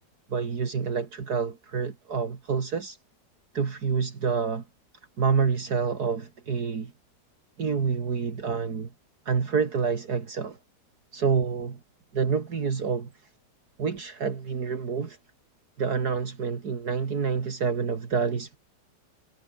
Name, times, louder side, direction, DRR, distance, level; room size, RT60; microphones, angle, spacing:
voice 1, 0.3-3.0 3.5-4.6 5.2-6.9 7.6-8.9 9.3-10.6 11.1-11.8 12.1-13.1 13.8-15.2 15.8-18.6, right 5 dB, 65° right, 2.6 m, -27 dB
omnidirectional pair, 1.8 m